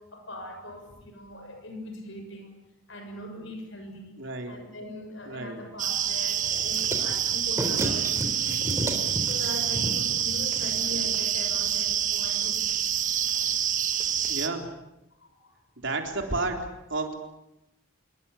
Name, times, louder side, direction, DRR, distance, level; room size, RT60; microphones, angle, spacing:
voice 1, 0.0-4.2 4.5-9.0 9.2-12.7 15.2-15.5, left 1 dB, 60° left, 6 dB, 6.6 m, -41 dB
voice 2, 4.2-4.5 5.3-5.6 14.3-14.7 15.8-16.6 16.9-17.1, right 3 dB, 55° right, 3 dB, 4.0 m, -31 dB
sound 1, 5.8-14.5, right 9 dB, 35° right, 1.5 m, -27 dB
sound 2, 6.4-11.2, right 1 dB, 15° right, 3.5 m, -34 dB
26.5 x 23.0 x 8.6 m, 0.91 s
head